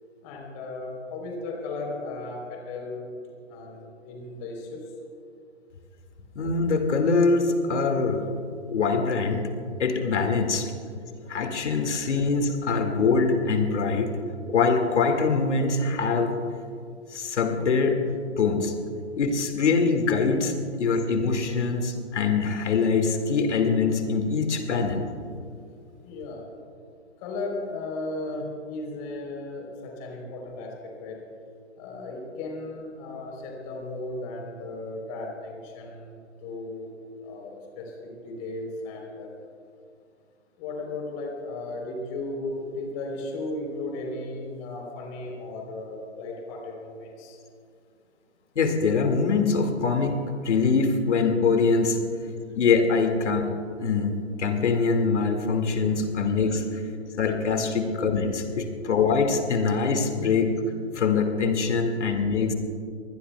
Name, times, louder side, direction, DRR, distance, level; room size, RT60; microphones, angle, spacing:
voice 1, 0.2-3.1 3.5-4.8 19.4-19.5 26.0-26.5 27.2-30.7 31.0-31.2 31.8-36.9 37.2-39.3 40.6-47.4 56.2-56.4, left 2 dB, 30° left, 0 dB, 3.6 m, -35 dB
voice 2, 6.4-8.3 8.7-9.5 9.8-10.7 11.3-14.1 14.5-16.3 17.1-18.1 18.4-18.7 19.1-20.5 20.8-25.1 48.6-50.2 50.4-52.0 52.5-53.5 53.8-56.8 57.2-60.5 60.9-62.5, left 4 dB, 70° left, 4 dB, 2.1 m, -23 dB
24.5 x 20.5 x 2.3 m, 2.3 s
hypercardioid pair, 145°, 36 cm